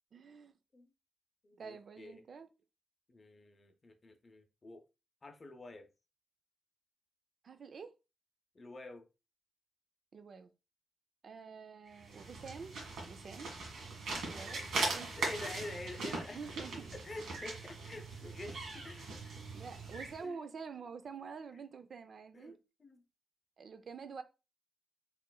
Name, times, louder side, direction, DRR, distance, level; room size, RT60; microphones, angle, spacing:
voice 1, 0.1-0.5 1.6-2.5 7.4-7.9 10.1-10.5 11.2-12.8 13.1-13.6 14.0-14.6 14.9-15.2 16.3-16.9 19.5-22.6 23.6-24.2, right 5 dB, 50° right, 0.4 m, -47 dB
voice 2, 1.4-2.2 3.1-4.8 5.2-5.9 8.5-9.1 14.3-14.7 15.2-16.4 16.9-19.4 20.2-20.4 22.3-23.0, left 2 dB, 30° left, 0.5 m, -48 dB
sound 1, 11.9-20.2, right 3 dB, 85° right, 1.5 m, -40 dB
4.7 x 3.1 x 2.2 m
wide cardioid pair, 150°, 0 cm